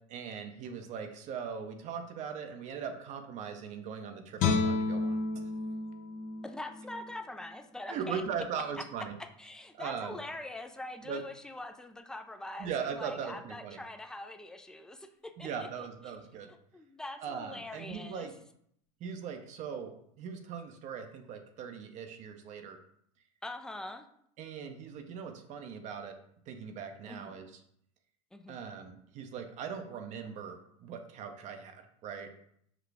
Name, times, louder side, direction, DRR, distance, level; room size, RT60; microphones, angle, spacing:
voice 1, 0.1-5.4 7.9-9.2 9.7-10.2 11.0-11.2 12.6-13.8 15.4-16.5 17.2-18.3 19.0-22.8 24.4-26.1 26.5-27.5 28.5-32.3, right 6 dB, 45° right, 6 dB, 0.6 m, -40 dB
Guitar, 4.4-7.5 7.9-8.1, left 3 dB, 50° left, 0.7 m, -32 dB
voice 2, 6.4-8.2 9.4-15.9 16.7-18.3 23.4-24.1 27.1-27.3 28.3-28.6, left 2 dB, 5° left, 6 dB, 0.4 m, -43 dB
5.8 x 2.3 x 3.5 m, 0.69 s
hypercardioid pair, 100°, 17 cm